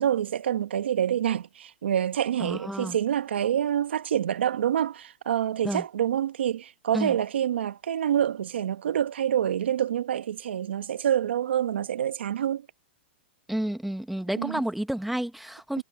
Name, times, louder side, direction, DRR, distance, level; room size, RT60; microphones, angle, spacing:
voice 1, 0.0-12.7 14.4-14.6 15.8-15.9, right 10 dB, 85° right, 1.3 m, -27 dB
voice 2, 2.4-3.0 5.6-5.8 6.9-7.2 13.5-15.8, right 1 dB, ahead, 1.1 m, -30 dB
hypercardioid pair, 145°, 6 cm